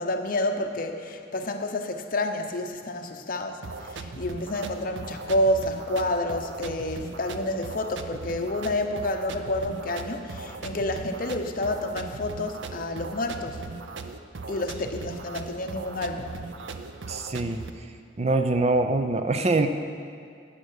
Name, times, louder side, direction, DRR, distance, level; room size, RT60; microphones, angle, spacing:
voice 1, 0.0-13.6 14.5-16.4, left 1 dB, 50° left, 5 dB, 0.8 m, -29 dB
sound 1, 3.6-17.7, right 3 dB, 85° right, 0.6 m, -39 dB
voice 2, 17.1-17.6 18.2-19.7, right 2 dB, 35° right, 8 dB, 0.5 m, -24 dB
11.5 x 8.9 x 6.6 m, 2.3 s
head